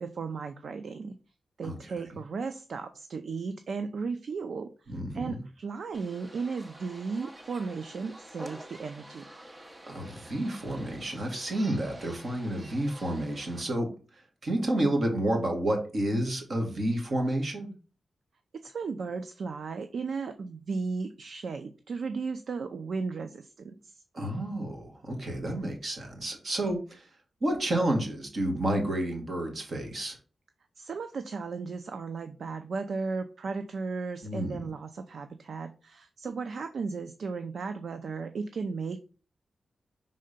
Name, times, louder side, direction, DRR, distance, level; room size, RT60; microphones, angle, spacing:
voice 1, 0.0-1.1 1.6-9.3 18.5-24.0 30.8-39.0, right 4 dB, 60° right, 8 dB, 0.5 m, -35 dB
voice 2, 1.6-1.9 4.9-5.4 9.8-17.7 24.1-27.1 27.4-30.2 34.2-34.6, right 1 dB, 45° right, 2 dB, 1.9 m, -30 dB
sound 1, 5.9-13.6, right 1 dB, 20° right, 0.8 m, -48 dB
5.6 x 3.8 x 5.1 m, 0.36 s
wide cardioid pair, 170°, 0 cm